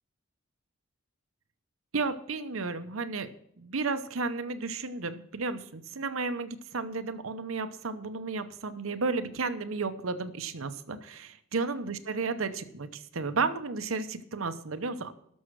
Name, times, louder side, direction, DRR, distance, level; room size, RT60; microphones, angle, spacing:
voice 1, 1.9-3.3 3.6-15.1, right 4 dB, 85° right, 11 dB, 0.9 m, -33 dB
12.5 x 6.4 x 6.2 m, 0.71 s
head